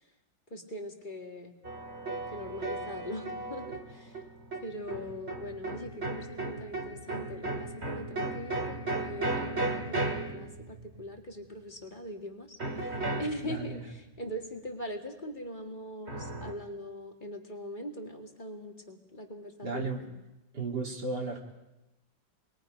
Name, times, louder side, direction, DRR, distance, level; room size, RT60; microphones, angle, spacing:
voice 1, 0.5-1.5 2.3-4.2 4.6-20.0, equal, 25° left, 2 dB, 2.2 m, -41 dB
sound 1, 1.6-11.2 12.6-13.8 16.1-16.5, right 2 dB, 35° right, 2.2 m, -35 dB
voice 2, 13.4-13.8 19.6-20.0 20.5-21.4, right 3 dB, 65° right, 0 dB, 3.4 m, -34 dB
28.5 x 21.5 x 5.2 m, 0.96 s
omnidirectional pair, 1.9 m